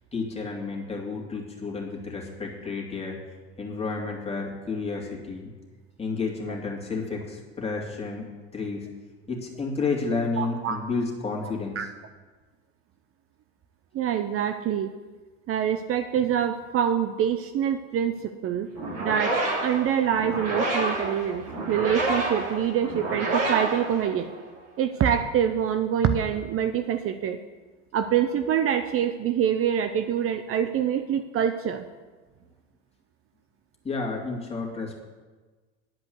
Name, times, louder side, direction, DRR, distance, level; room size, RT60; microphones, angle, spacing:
voice 1, 0.1-3.2 3.6-5.5 6.0-8.3 8.5-8.9 9.3-11.8 33.8-35.0, left 4 dB, 20° left, -1 dB, 2.8 m, -31 dB
voice 2, 10.4-10.8 11.4-11.9 13.9-14.9 15.5-18.7 19.0-19.4 19.6-24.3 24.8-27.4 27.9-31.8, right 9 dB, 40° right, 9 dB, 0.7 m, -25 dB
sound 1, 18.7-24.6, right 2 dB, 60° right, 3.1 m, -29 dB
11.0 x 5.2 x 8.0 m, 1.3 s
hypercardioid pair, 80°, 34 cm